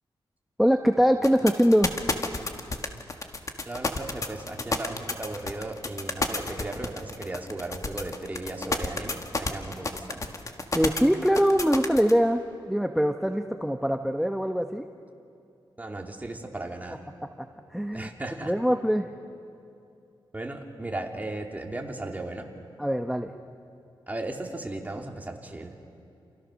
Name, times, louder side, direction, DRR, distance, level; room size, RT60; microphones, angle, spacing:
voice 1, 0.6-1.9 10.7-14.9 17.7-18.1 18.4-19.1 22.8-23.3, equal, ahead, 6 dB, 0.9 m, -23 dB
sound 1, 1.2-12.1, left 3 dB, 40° left, 1.7 m, -30 dB
voice 2, 3.7-10.2 15.8-17.0 17.9-18.5 20.3-22.5 24.1-25.7, right 2 dB, 20° right, 1 dB, 2.7 m, -36 dB
28.5 x 28.5 x 6.4 m, 2.6 s
wide cardioid pair, 105°, 9 cm